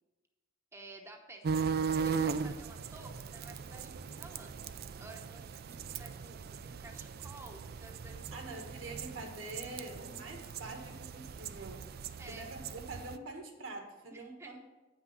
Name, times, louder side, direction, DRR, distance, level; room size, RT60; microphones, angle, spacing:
voice 1, 0.7-4.5 5.0-8.4 12.2-12.4 14.1-14.6, right 2 dB, 15° right, 1 dB, 0.8 m, -52 dB
sound 1, 1.4-13.2, right 5 dB, 50° right, 0.4 m, -38 dB
voice 2, 8.3-11.9 12.3-14.6, right 2 dB, 75° right, 3 dB, 1.6 m, -45 dB
8.9 x 5.9 x 5.8 m, 1.1 s
head